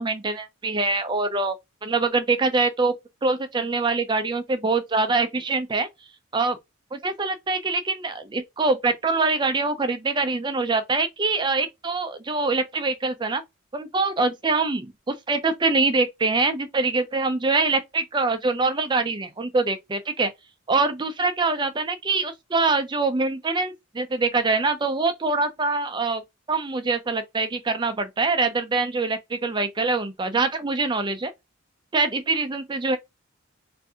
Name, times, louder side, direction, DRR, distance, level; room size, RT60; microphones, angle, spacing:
voice 1, 0.0-1.6 1.8-2.9 3.2-5.9 6.3-6.6 6.9-13.4 13.7-20.3 20.7-26.2 26.5-31.3 31.9-33.0, right 3 dB, 20° right, 0.4 m, -24 dB
2.6 x 2.5 x 3.5 m
head